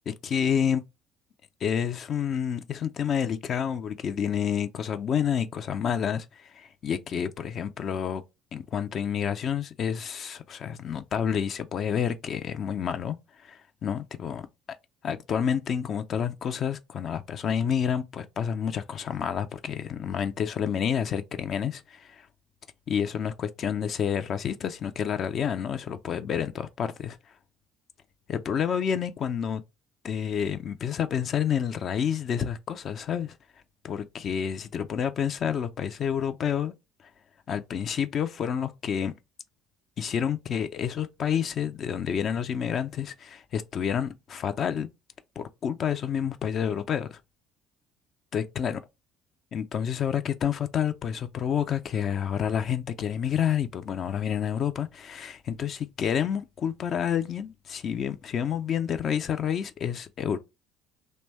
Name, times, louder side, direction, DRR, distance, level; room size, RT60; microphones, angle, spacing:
voice 1, 0.1-0.8 1.6-8.2 8.5-13.2 13.4-14.5 15.0-22.3 22.9-27.2 28.3-29.6 30.0-33.3 33.8-36.7 37.5-39.1 40.0-44.9 45.4-47.2 48.3-48.8 49.5-60.4, left 8 dB, 45° left, 0.3 m, -29 dB
2.7 x 2.1 x 3.1 m
figure-of-eight pair, 55°, 0 cm